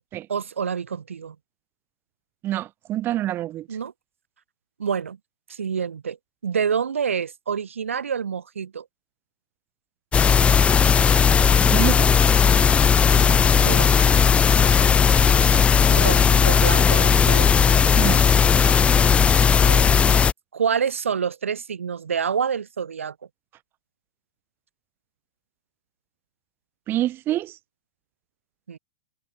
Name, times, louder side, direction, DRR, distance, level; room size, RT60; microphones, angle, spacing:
voice 1, 0.3-1.4 3.7-3.9 4.8-5.2 5.5-6.2 6.4-8.9 13.1-13.3 13.6-13.9 15.9-17.8 19.7-20.0 20.5-23.2 28.7-28.8, right 7 dB, 85° right, 2.6 m, -27 dB
voice 2, 2.4-3.7 11.7-12.1 15.5-15.6 17.9-18.2 26.9-27.6, right 14 dB, 30° right, 4.6 m, -26 dB
sound 1, 10.1-20.3, left 6 dB, 15° left, 1.0 m, -17 dB
hypercardioid pair, 115°, 7 cm